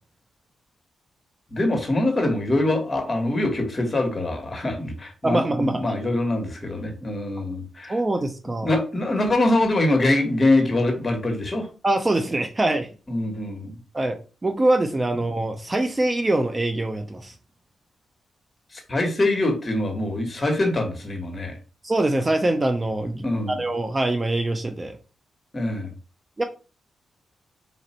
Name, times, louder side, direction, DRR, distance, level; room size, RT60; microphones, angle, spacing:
voice 1, 1.5-7.9 8.6-11.7 13.1-13.8 18.7-21.6 23.2-23.6 25.5-25.9, left 2 dB, 30° left, 1.3 m, -24 dB
voice 2, 5.2-5.8 7.9-8.7 11.8-12.9 13.9-17.3 21.8-25.0 26.4-26.5, right 2 dB, 25° right, 0.5 m, -24 dB
4.1 x 2.6 x 4.2 m
cardioid pair, 95°, 0 cm